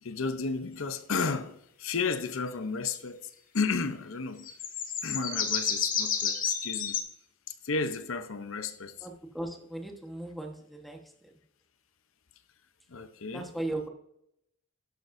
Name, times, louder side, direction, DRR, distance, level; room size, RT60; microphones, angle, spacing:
voice 1, 0.0-4.5 5.0-7.0 7.5-9.1 12.9-13.5, left 4 dB, 70° left, 0.7 m, -33 dB
sound 1, 4.4-7.0, left 7 dB, 40° left, 1.1 m, -30 dB
voice 2, 9.0-11.0 13.3-13.9, right 2 dB, ahead, 1.2 m, -37 dB
11.5 x 9.1 x 2.6 m
head